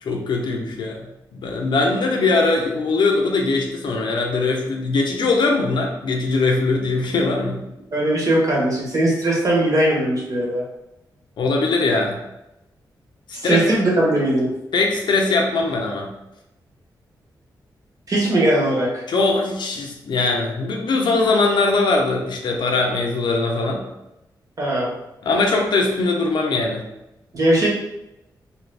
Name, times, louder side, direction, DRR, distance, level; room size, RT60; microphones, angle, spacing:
voice 1, 0.0-1.1 1.3-7.6 11.4-12.2 13.4-13.8 14.7-16.1 19.1-23.8 25.2-26.9, left 3 dB, 75° left, 1 dB, 0.6 m, -21 dB
voice 2, 7.9-10.6 13.3-14.5 18.1-19.0 24.6-24.9 27.3-27.7, right 1 dB, 45° right, -4 dB, 1.2 m, -19 dB
2.6 x 2.6 x 3.3 m, 0.91 s
cardioid pair, 85°, 8 cm